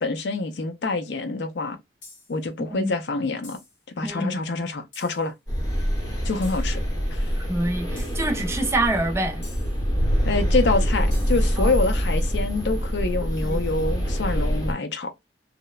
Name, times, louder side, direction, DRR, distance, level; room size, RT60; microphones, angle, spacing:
voice 1, 0.0-1.8 2.3-3.6 4.0-5.3 6.2-6.8 7.1-7.3 10.3-15.1, left 3 dB, 65° left, 0.5 m, -26 dB
sound 1, 2.0-2.4 3.4-3.8 4.9-5.3 6.4-6.8 8.0-8.3 9.4-9.8 11.1-11.5, left 3 dB, 80° left, 1.5 m, -47 dB
voice 2, 4.0-4.4 7.4-9.4 11.6-11.7 13.4-13.6, right 1 dB, 15° right, 0.4 m, -26 dB
sound 2, 5.5-14.7, equal, 20° left, 0.9 m, -25 dB
2.9 x 2.0 x 2.2 m
head